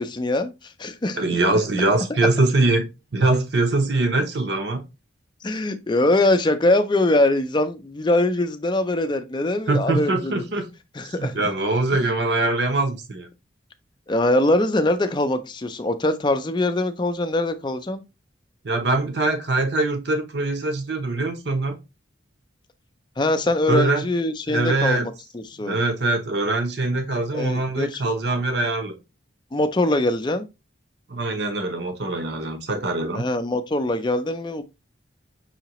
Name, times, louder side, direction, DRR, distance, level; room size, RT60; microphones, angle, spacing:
voice 1, 0.0-1.2 5.4-10.4 10.9-11.4 12.0-12.1 14.1-18.0 23.2-25.0 25.3-25.8 27.3-28.0 29.5-30.5 33.1-34.6, left 1 dB, 25° left, 0.4 m, -22 dB
voice 2, 1.2-2.8 3.1-4.8 9.7-10.7 11.2-13.3 18.6-21.8 23.7-24.0 24.5-25.1 25.6-28.9 31.1-33.2, right 2 dB, 55° right, 0.9 m, -23 dB
5.7 x 2.9 x 2.9 m
head